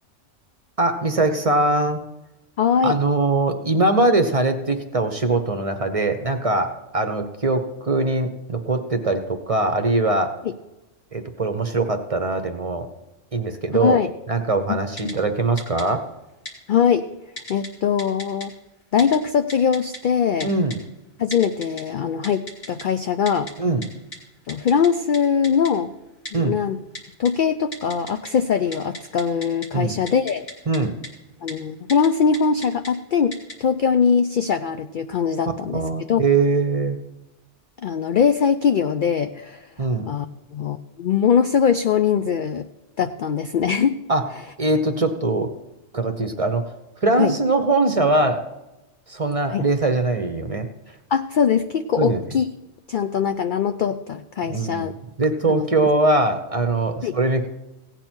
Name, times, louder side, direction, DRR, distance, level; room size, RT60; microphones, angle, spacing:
voice 1, 0.8-2.0 2.8-10.4 11.1-12.9 13.3-14.0 14.3-16.1 20.4-20.8 23.6-23.9 26.3-26.6 29.7-30.0 30.7-30.9 35.7-37.0 39.8-40.1 44.1-44.3 44.6-45.5 45.9-46.7 47.0-48.4 49.1-50.7 52.0-52.2 54.5-54.9 55.2-57.5, right 2 dB, 35° right, 7 dB, 0.8 m, -21 dB
voice 2, 2.6-2.9 13.8-14.1 14.7-14.8 15.0-15.1 16.7-17.1 17.5-18.5 18.9-20.5 21.2-23.5 24.5-25.9 26.3-26.8 27.2-30.5 31.4-35.8 36.1-36.2 37.8-39.7 40.1-40.3 40.5-42.7 43.0-44.0 47.2-47.3 49.5-49.7 51.1-52.5 52.9-54.9 55.5-55.6 57.0-57.2, left 7 dB, 65° left, 9 dB, 0.5 m, -21 dB
Typing, 15.0-15.1 15.6-15.8 16.5-16.6 17.4-17.7 18.0-18.5 19.0-19.2 19.5-20.0 20.4-20.8 21.3-21.8 22.2-22.8 23.3-23.5 23.8-23.9 24.1-24.2 24.5-24.9 25.1-25.2 25.4-25.7 26.2-26.3 26.9-27.3 27.7-28.3 28.6-29.7 30.1-30.8 31.0-31.1 31.5-31.6 31.9-32.1 32.3-32.9 33.3-33.5, left 1 dB, 45° left, 2.3 m, -35 dB
16.0 x 9.0 x 4.5 m, 1.0 s
omnidirectional pair, 1.3 m